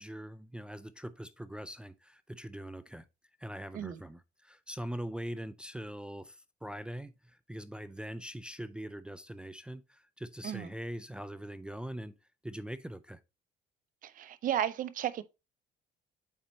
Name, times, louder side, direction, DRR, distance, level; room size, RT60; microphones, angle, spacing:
voice 1, 0.0-3.1 3.4-12.1 12.4-13.2, equal, 5° right, 0.4 m, -42 dB
voice 2, 14.0-15.2, right 10 dB, 55° right, 0.6 m, -33 dB
8.6 x 4.3 x 2.8 m
cardioid pair, 110°, 17 cm